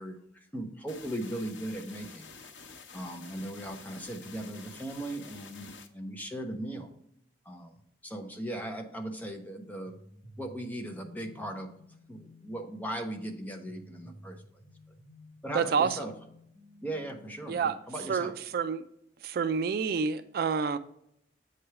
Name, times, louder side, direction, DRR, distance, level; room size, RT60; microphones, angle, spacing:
voice 1, 0.0-2.3 2.9-6.9 7.5-7.7 8.0-10.0 10.4-11.7 12.1-14.4 15.4-16.1 16.8-18.3, right 1 dB, 10° left, 0.7 m, -38 dB
sound 1, 0.9-5.9, left 5 dB, 90° left, 0.8 m, -49 dB
sound 2, 9.8-17.4, left 1 dB, 5° right, 3.0 m, -54 dB
voice 2, 15.5-16.0 17.5-17.8 18.1-18.8 19.2-20.8, right 6 dB, 55° right, 0.3 m, -28 dB
7.8 x 3.3 x 5.7 m
head